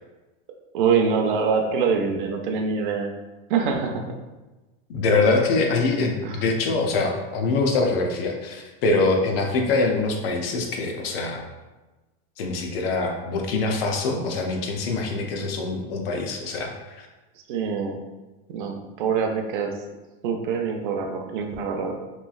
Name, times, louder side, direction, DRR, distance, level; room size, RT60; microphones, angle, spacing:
voice 1, 0.7-3.1 3.5-4.0 6.2-6.4 17.5-18.0 18.5-19.7 20.2-21.9, right 5 dB, 55° right, 3 dB, 0.4 m, -24 dB
voice 2, 4.9-11.4 12.4-16.7 17.0-17.1, left 3 dB, 70° left, 3 dB, 0.6 m, -24 dB
3.0 x 2.3 x 2.3 m, 1.1 s
supercardioid pair, 175°, 30 cm